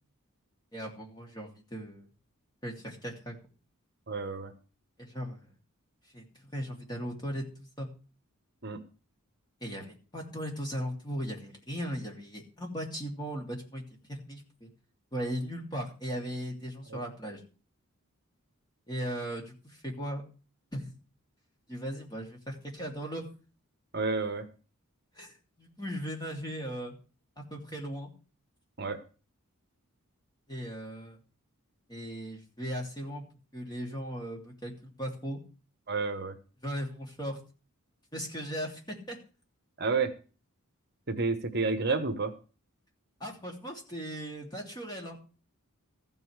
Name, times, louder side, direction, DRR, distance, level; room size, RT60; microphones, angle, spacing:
voice 1, 0.7-2.1 2.6-3.4 5.0-5.5 6.1-6.2 6.5-7.4 7.8-7.9 9.6-13.8 14.1-14.7 15.1-17.4 18.9-20.2 20.7-20.9 21.7-23.3 25.1-26.9 27.4-28.1 30.5-31.2 31.9-33.2 33.5-35.4 36.6-37.4 38.1-39.2 43.2-45.2, equal, 20° left, 0 dB, 3.0 m, -37 dB
voice 2, 4.1-4.5 8.6-8.8 16.9-17.0 23.9-24.5 28.8-29.0 35.9-36.3 39.8-40.1 41.1-42.3, right 4 dB, 45° right, 8 dB, 1.2 m, -30 dB
14.5 x 5.5 x 8.0 m, 0.36 s
head